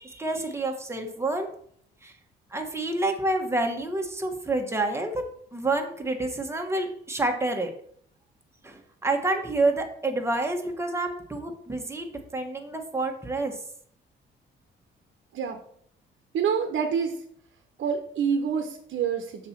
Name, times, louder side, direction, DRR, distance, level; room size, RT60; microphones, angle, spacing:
voice 1, 0.0-1.5 2.0-2.1 2.5-5.2 5.5-7.7 8.6-13.5, right 2 dB, 15° right, 3 dB, 1.4 m, -28 dB
voice 2, 16.3-17.1 17.8-19.5, right 7 dB, 65° right, 5 dB, 1.0 m, -27 dB
6.6 x 4.2 x 5.9 m, 0.64 s
cardioid pair, 90°, 20 cm